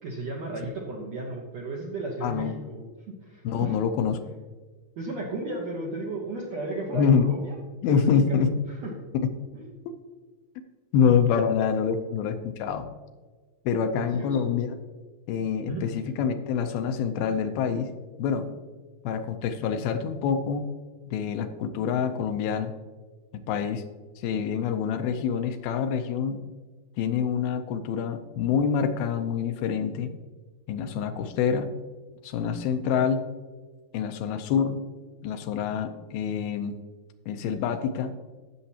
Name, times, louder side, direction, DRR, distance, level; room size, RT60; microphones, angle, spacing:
voice 1, 0.0-3.8 5.0-7.6 7.9-8.5 8.8-8.9 9.5-9.6 13.9-14.5 15.7-15.8, right 2 dB, 70° right, -2 dB, 1.6 m, -34 dB
voice 2, 2.2-2.6 3.4-4.2 6.9-7.2 7.8-8.5 9.1-9.3 9.9-10.0 10.9-12.9 13.7-14.8 15.3-17.9 18.2-18.5 19.0-20.7 21.1-22.7 23.3-23.8 24.2-26.4 27.0-30.1 30.7-31.7 32.2-33.2 33.9-34.8 35.2-36.8 37.3-38.1, left 7 dB, 80° left, 7 dB, 2.4 m, -26 dB
16.0 x 6.9 x 2.9 m, 1.4 s
omnidirectional pair, 4.5 m